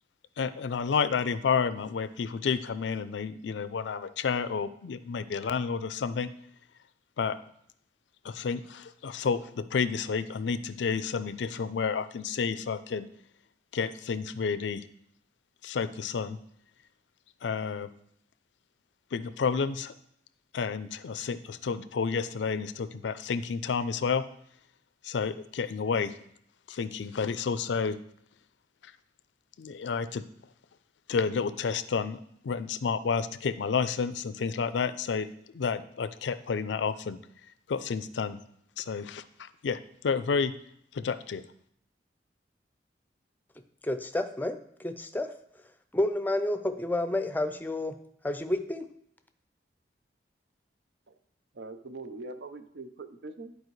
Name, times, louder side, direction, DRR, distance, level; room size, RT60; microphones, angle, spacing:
voice 1, 0.4-6.3 7.2-7.4 8.2-13.1 13.7-14.8 15.6-16.4 17.4-17.9 19.1-19.9 20.5-24.2 25.0-26.1 26.7-28.0 28.8-28.9 29.6-30.2 31.1-32.2 32.4-35.3 35.5-37.2 37.7-38.4 38.8-40.5 40.9-41.4, left 5 dB, 90° left, 14 dB, 0.4 m, -30 dB
voice 2, 43.8-45.3 45.9-47.9 48.2-48.9, left 1 dB, 10° left, 8 dB, 0.5 m, -30 dB
voice 3, 51.5-53.6, right 3 dB, 75° right, 10 dB, 0.6 m, -42 dB
10.5 x 4.7 x 3.1 m, 0.69 s
head